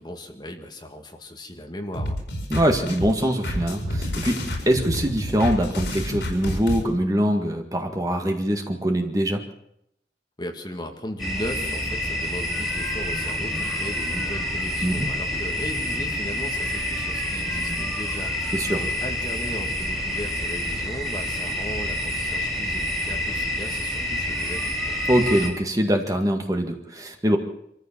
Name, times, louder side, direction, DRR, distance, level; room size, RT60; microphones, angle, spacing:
voice 1, 0.0-2.2 10.4-25.0, left 1 dB, 25° left, 3 dB, 2.0 m, -37 dB
sound 1, 1.9-6.8, equal, 85° left, 5.1 m, -29 dB
voice 2, 2.5-9.4 14.8-15.1 18.5-18.8 25.1-27.4, equal, 20° right, 4 dB, 1.9 m, -23 dB
sound 2, 11.2-25.5, left 1 dB, ahead, 3.9 m, -28 dB
25.0 x 14.0 x 7.5 m, 0.78 s
head